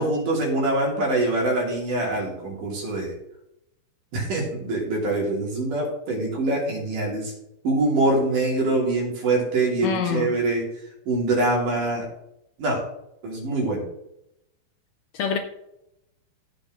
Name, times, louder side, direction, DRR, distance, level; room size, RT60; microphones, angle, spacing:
voice 1, 0.0-3.1 4.1-7.3 7.6-10.6 11.1-12.1 12.6-12.8 13.2-13.9, right 2 dB, 60° right, 4.5 m, -24 dB
voice 2, 9.8-10.4 15.1-15.4, left 6 dB, 75° left, 1.6 m, -25 dB
15.0 x 6.3 x 3.8 m
omnidirectional pair, 4.3 m